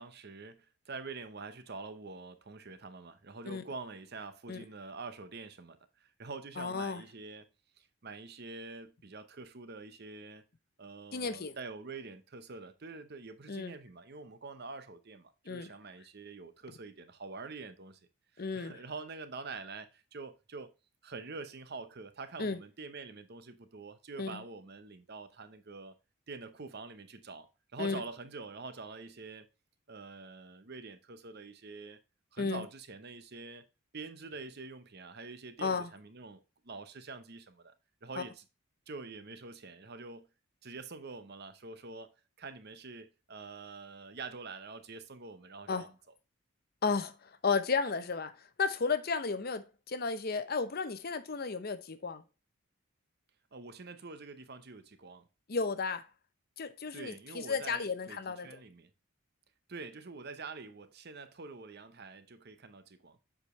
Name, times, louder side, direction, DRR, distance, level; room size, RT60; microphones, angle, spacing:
voice 1, 0.0-7.5 7.8-10.4 10.8-18.0 18.3-20.7 21.0-25.9 26.3-29.5 29.9-32.0 32.3-33.6 33.9-37.7 38.0-38.4 38.9-40.3 40.6-45.9 53.5-55.2 56.9-58.9 59.7-63.2, right 4 dB, 50° right, 0.8 m, -46 dB
voice 2, 6.6-7.0 11.1-11.5 13.5-13.7 15.5-15.7 18.4-18.8 22.4-22.6 24.2-24.4 27.8-28.0 32.4-32.6 35.6-35.9 38.2-38.3 45.7-45.9 46.8-48.3 48.6-52.2 55.5-56.1 56.6-58.5, left 4 dB, 45° left, 0.7 m, -33 dB
7.4 x 5.0 x 3.1 m
head